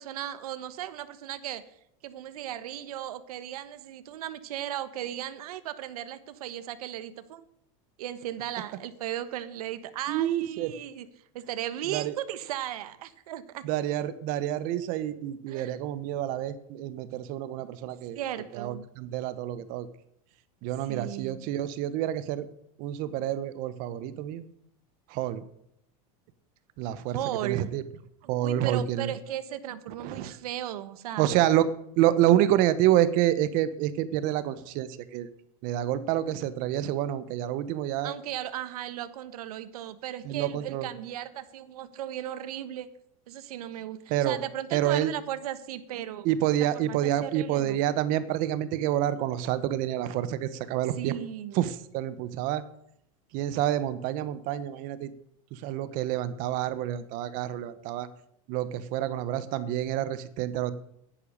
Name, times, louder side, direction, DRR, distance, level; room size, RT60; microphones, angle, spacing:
voice 1, 0.0-1.7 2.0-7.4 8.0-11.1 11.3-13.6 15.5-15.8 18.1-18.8 20.9-21.5 27.1-27.7 28.4-31.3 38.0-42.9 43.3-46.3 46.6-47.8 51.0-51.7, right 12 dB, 85° right, 12 dB, 1.2 m, -36 dB
voice 2, 10.1-10.7 11.9-12.2 13.6-18.2 18.5-19.9 20.6-22.5 22.8-24.5 25.1-25.4 26.8-27.8 28.3-29.1 30.0-30.4 31.2-31.7 32.0-35.3 35.6-38.1 40.2-40.9 44.1-44.4 44.7-45.1 46.2-51.1 51.5-52.6 53.3-55.1 55.5-58.1 58.5-60.7, right 12 dB, 45° right, 14 dB, 1.1 m, -28 dB
10.5 x 10.5 x 6.5 m, 0.73 s
supercardioid pair, 150°, 19 cm